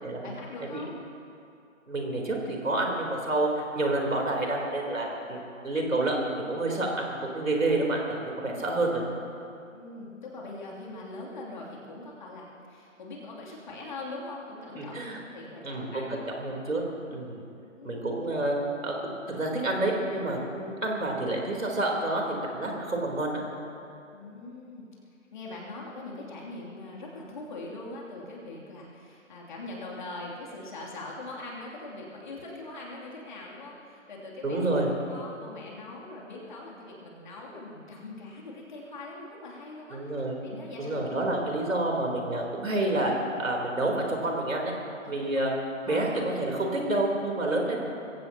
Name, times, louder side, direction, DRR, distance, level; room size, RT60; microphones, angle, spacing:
voice 1, 0.2-0.9 8.5-8.7 9.7-15.0 15.3-16.2 17.8-18.2 24.1-24.9 25.3-34.6 35.1-40.0 40.4-41.0 42.3-42.4 45.0-45.4 45.9-46.2, left 2 dB, 35° left, -4 dB, 2.9 m, -42 dB
voice 2, 1.9-9.0 14.8-15.2 15.6-16.8 17.1-17.4 17.8-18.6 18.8-23.4 34.4-34.9 39.9-40.4 40.8-43.1 43.4-44.7 45.1-45.5 45.9-47.8, right 2 dB, 75° right, 0 dB, 3.7 m, -29 dB
22.5 x 16.0 x 2.9 m, 2.6 s
figure-of-eight pair, 155°, 40 cm